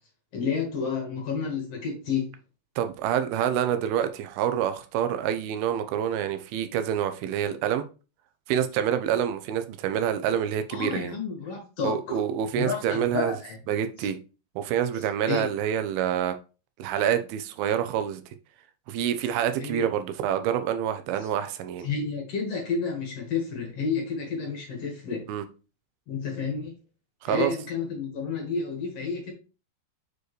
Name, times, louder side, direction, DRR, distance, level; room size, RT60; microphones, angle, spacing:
voice 1, 0.3-2.3 10.7-12.2 12.6-13.6 14.0-14.1 15.3-15.5 19.6-19.8 21.8-25.3 26.1-26.7 27.2-29.3, left 5 dB, 50° left, 2.1 m, -30 dB
voice 2, 2.8-7.8 8.5-11.2 11.8-13.4 13.7-14.2 14.6-16.4 16.8-18.2 18.9-21.9 25.3-25.4 27.2-27.5, right 9 dB, 85° right, 2.6 m, -27 dB
6.5 x 4.7 x 3.1 m
omnidirectional pair, 4.3 m